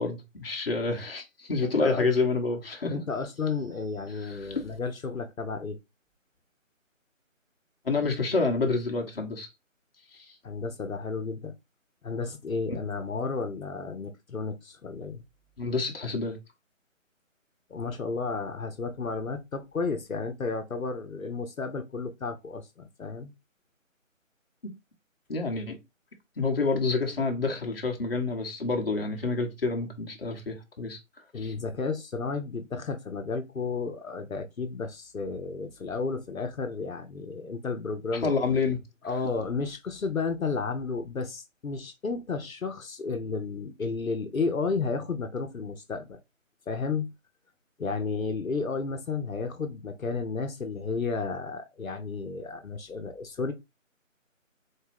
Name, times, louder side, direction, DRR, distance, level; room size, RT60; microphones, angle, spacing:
voice 1, 0.0-2.9 4.2-4.7 7.8-9.5 10.1-10.3 15.6-16.4 25.3-25.8 26.4-31.0 31.4-31.5 38.2-38.8, left 3 dB, 45° left, 1.0 m, -28 dB
voice 2, 1.6-2.1 2.9-5.8 10.4-11.5 12.0-15.2 17.7-23.3 31.3-38.3 39.0-46.2 46.7-47.1 47.8-53.5, left 4 dB, 85° left, 0.8 m, -32 dB
4.1 x 2.2 x 3.3 m
figure-of-eight pair, 155°, 40 cm